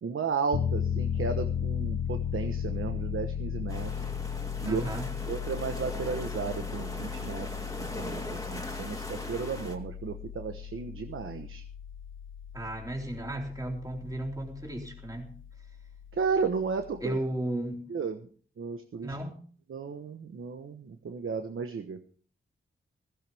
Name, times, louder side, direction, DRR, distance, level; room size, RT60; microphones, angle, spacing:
voice 1, 0.0-4.1 4.6-4.8 5.3-11.6 16.1-17.2 17.9-18.2 18.6-19.1 19.7-22.0, right 5 dB, 75° right, 6 dB, 1.2 m, -34 dB
Piano, 0.5-17.2, left 8 dB, 70° left, 1.0 m, -36 dB
sound 1, 3.7-9.8, left 1 dB, 15° left, 2.2 m, -40 dB
voice 2, 4.6-5.1 12.5-15.3 17.0-17.9 19.0-19.4, right 1 dB, 15° right, 0 dB, 3.7 m, -34 dB
16.0 x 15.5 x 3.5 m, 0.44 s
wide cardioid pair, 115°, 21 cm